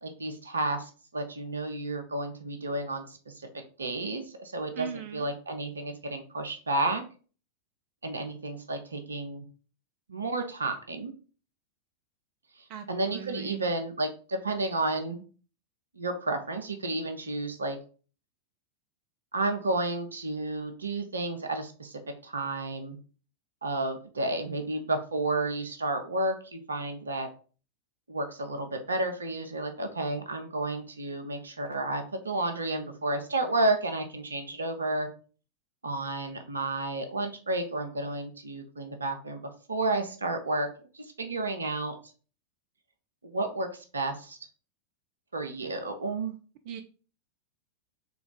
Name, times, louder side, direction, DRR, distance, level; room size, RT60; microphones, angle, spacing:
voice 1, 0.0-4.9 5.1-7.0 8.0-9.4 10.1-11.1 12.9-15.2 15.9-17.8 19.3-23.0 23.6-27.3 28.1-35.1 35.8-39.4 39.7-40.7 40.9-41.9 43.2-44.4 45.3-46.4, right 2 dB, 75° right, 6 dB, 0.8 m, -31 dB
voice 2, 4.7-5.3 12.7-13.6 46.7-46.8, right 8 dB, 45° right, 7 dB, 0.5 m, -39 dB
3.6 x 3.4 x 4.0 m, 0.38 s
figure-of-eight pair, 90°, 0 cm